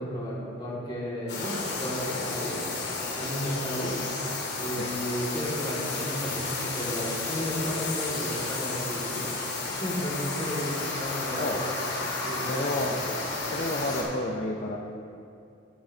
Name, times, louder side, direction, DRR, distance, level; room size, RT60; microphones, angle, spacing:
voice 1, 0.0-2.6 3.2-4.0 4.6-9.3 9.7-11.7 12.2-12.9, equal, 20° left, -5 dB, 2.1 m, -33 dB
sound 1, 1.3-14.0, left 3 dB, 55° left, 2.3 m, -32 dB
sound 2, 6.1-11.5, right 3 dB, 85° right, 2.6 m, -50 dB
voice 2, 12.5-13.0 13.5-14.8, left 2 dB, 40° left, 0 dB, 0.6 m, -30 dB
12.5 x 11.0 x 2.8 m, 2.5 s
head